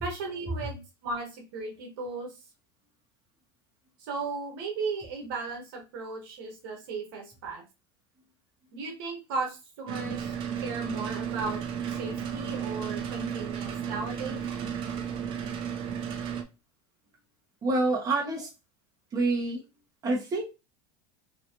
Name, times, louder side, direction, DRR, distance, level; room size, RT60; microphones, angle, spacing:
voice 1, 0.0-2.3 4.0-7.6 8.7-10.3 10.6-11.6 11.9-14.4, right 3 dB, 75° right, 2 dB, 1.2 m, -36 dB
sound 1, 9.9-16.4, right 8 dB, 50° right, 0.6 m, -33 dB
voice 2, 17.6-18.5 19.1-19.6 20.0-20.4, right 2 dB, 30° right, -1 dB, 1.4 m, -27 dB
3.1 x 2.9 x 2.8 m, 0.27 s
supercardioid pair, 125°, 11 cm